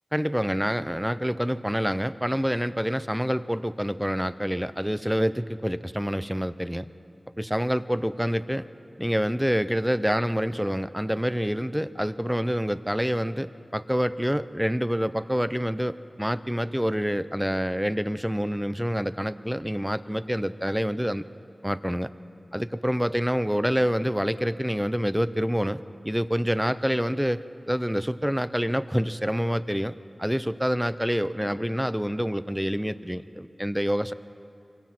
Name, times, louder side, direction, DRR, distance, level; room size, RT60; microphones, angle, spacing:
voice 1, 0.1-6.9 7.4-8.7 9.0-21.2 21.6-22.1 22.5-29.9 30.2-34.1, equal, 5° right, 14 dB, 0.7 m, -27 dB
24.5 x 24.0 x 6.1 m, 2.7 s
wide cardioid pair, 60°, 0 cm